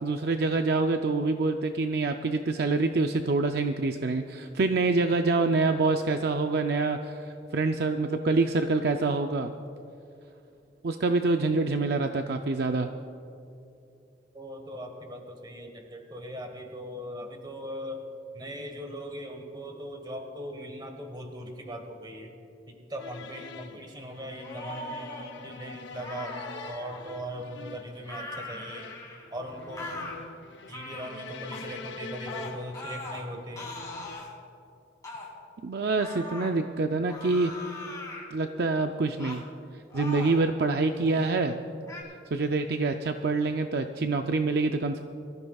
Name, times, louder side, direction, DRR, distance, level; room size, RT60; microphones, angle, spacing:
voice 1, 0.0-9.5 10.8-12.9 35.6-37.5 38.3-39.4 39.9-41.6 42.3-45.0, right 3 dB, 60° right, 6 dB, 0.5 m, -26 dB
voice 2, 14.3-18.0 18.3-22.3 22.7-25.1 25.4-26.3 26.6-28.9 29.3-30.0 30.7-33.7, equal, 25° right, 4 dB, 1.3 m, -39 dB
sound 1, 23.0-34.2, left 4 dB, 80° left, 0.7 m, -45 dB
sound 2, 24.4-25.3 25.9-27.0 28.1-29.3 29.8-30.2 30.7-31.1 31.5-31.7 32.3-33.2 33.6-34.3 35.0-35.3 36.0-36.5 37.1-38.3 39.2-39.4 39.9-40.4 41.0-41.3 41.9-42.0, left 2 dB, 20° left, 2.4 m, -40 dB
23.0 x 14.5 x 2.4 m, 2.7 s
head